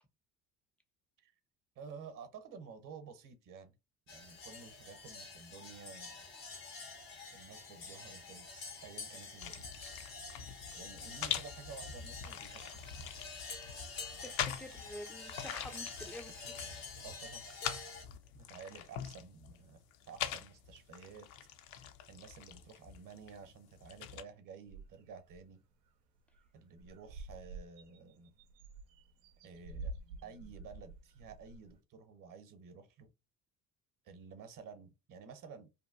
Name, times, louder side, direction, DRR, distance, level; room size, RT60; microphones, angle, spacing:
voice 1, 1.8-3.8 4.1-6.2 7.3-9.7 10.7-13.2 17.0-17.5 18.3-21.3 22.1-25.6 26.5-28.3 29.4-29.9 30.2-33.1 34.0-35.7, right 5 dB, 45° right, 0.8 m, -52 dB
sound 1, 4.1-18.0, left 4 dB, 85° left, 1.1 m, -48 dB
Fleshy Pasta Stirring Sounds, 9.4-24.2, left 9 dB, 70° left, 0.6 m, -44 dB
voice 2, 14.2-16.4, equal, 5° left, 0.4 m, -48 dB
sound 2, 24.7-25.4 25.9-26.0 26.2-26.5 26.8-31.8, right 3 dB, 85° right, 0.6 m, -49 dB
2.8 x 2.2 x 2.5 m
hypercardioid pair, 55°, 48 cm